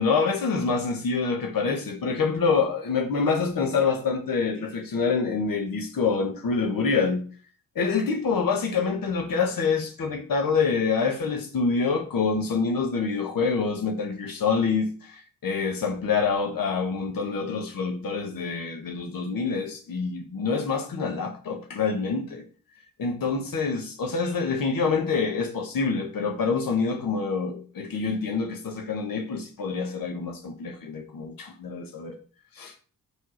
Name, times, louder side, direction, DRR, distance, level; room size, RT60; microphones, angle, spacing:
voice 1, 0.0-7.2 7.7-22.4 23.0-32.2 32.6-32.7, left 5 dB, 75° left, 1.4 m, -26 dB
5.1 x 5.0 x 6.3 m
wide cardioid pair, 110°, 35 cm